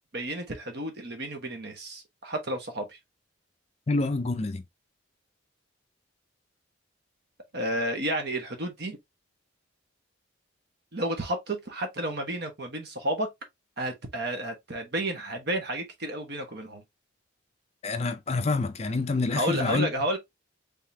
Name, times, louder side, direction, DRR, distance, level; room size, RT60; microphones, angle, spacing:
voice 1, 0.1-3.0 7.5-9.0 10.9-13.3 13.8-16.8 19.3-20.2, right 1 dB, 55° right, 1.1 m, -31 dB
voice 2, 3.9-4.6 17.8-19.9, left 3 dB, 30° left, 0.4 m, -27 dB
3.8 x 3.6 x 2.7 m
head